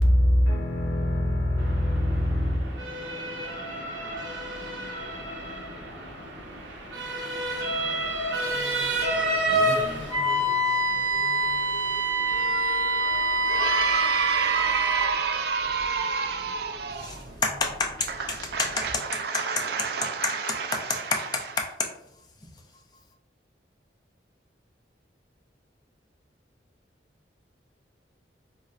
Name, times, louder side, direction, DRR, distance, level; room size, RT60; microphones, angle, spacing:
voice 1, 0.0-3.4, left 1 dB, 80° left, 0.7 m, -24 dB
Motor vehicle (road) / Siren, 1.6-19.0, right 1 dB, 90° right, 0.7 m, -32 dB
Wind instrument woodwind instrument, 10.1-15.1, right 2 dB, 25° right, 0.9 m, -25 dB
voice 2, 13.4-17.2 18.3-21.0, right 5 dB, 60° right, 0.4 m, -29 dB
voice 3, 17.0-19.6 20.2-21.9, left 3 dB, 25° left, 0.4 m, -30 dB
4.1 x 2.1 x 2.4 m
head